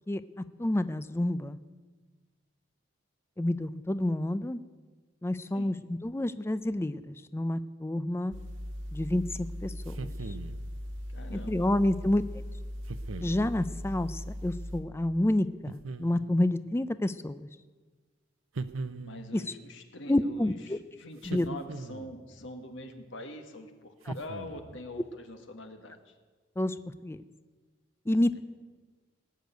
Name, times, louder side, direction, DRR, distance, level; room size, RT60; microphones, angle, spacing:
voice 1, 0.6-1.6 3.4-4.6 5.2-8.3 8.9-10.3 11.3-12.4 13.2-17.5 19.3-19.4 20.1-20.8 21.3-21.5 24.1-24.2 26.6-26.8 27.0-27.2 28.1-28.4, left 1 dB, 15° left, 13 dB, 0.4 m, -29 dB
sound 1, 8.3-14.8, equal, 65° right, 1.8 m, -39 dB
sound 2, 9.9-10.7 12.9-13.5 15.7-16.4 18.6-19.4 21.2-22.2 24.0-24.8, right 3 dB, 85° right, 0.7 m, -40 dB
voice 2, 11.1-11.7 19.0-26.1 28.3-28.4, left 1 dB, 65° left, 5 dB, 1.7 m, -44 dB
19.0 x 6.6 x 9.2 m, 1.4 s
head